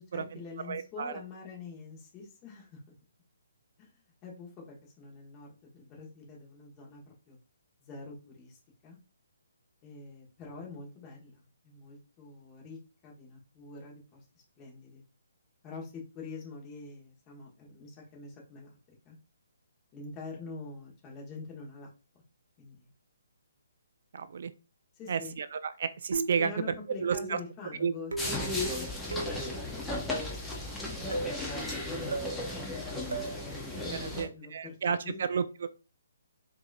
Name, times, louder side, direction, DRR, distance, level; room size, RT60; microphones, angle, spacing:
voice 1, 0.1-2.9 3.8-7.4 7.8-9.0 9.8-14.3 14.6-15.0 15.6-18.8 19.0-19.2 19.9-21.9 22.6-22.9 25.0-25.3 26.4-32.7 33.8-34.8 35.0-35.2, left 4 dB, 20° left, -1 dB, 1.4 m, -46 dB
voice 2, 0.7-1.1 24.1-24.5 25.1-26.5 27.0-27.4 27.8-27.9 33.7-35.7, right 6 dB, 55° right, 12 dB, 0.3 m, -32 dB
sound 1, 26.1-26.5 27.1-27.5 28.1-28.4 29.1-29.4 30.1-30.4 31.1-31.4 32.1-32.4 33.1-33.4, right 3 dB, 85° right, 0.8 m, -35 dB
sound 2, 28.2-34.3, left 2 dB, 5° left, 0.6 m, -35 dB
4.6 x 2.7 x 2.5 m, 0.32 s
hypercardioid pair, 155°, 0 cm